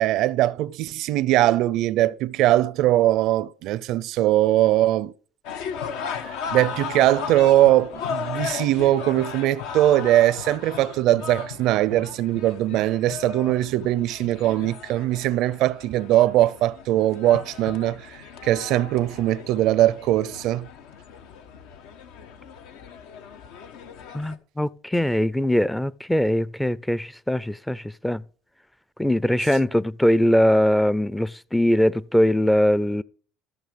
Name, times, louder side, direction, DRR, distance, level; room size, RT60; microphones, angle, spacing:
voice 1, 0.0-5.1 6.2-20.7, right 14 dB, 70° right, 0.5 m, -21 dB
sound 1, 5.4-24.4, left 7 dB, 85° left, 1.1 m, -36 dB
voice 2, 24.1-28.2 29.0-33.0, left 1 dB, 5° left, 0.4 m, -21 dB
14.0 x 6.3 x 5.2 m
cardioid pair, 110°, 0 cm